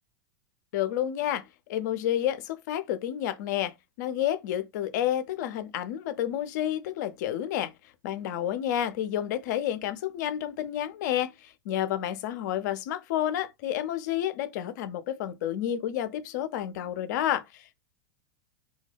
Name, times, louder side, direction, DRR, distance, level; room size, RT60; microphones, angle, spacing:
voice 1, 0.7-7.7 8.0-17.7, left 11 dB, 60° left, 0.4 m, -30 dB
2.2 x 2.2 x 3.2 m
hypercardioid pair, 95°, 11 cm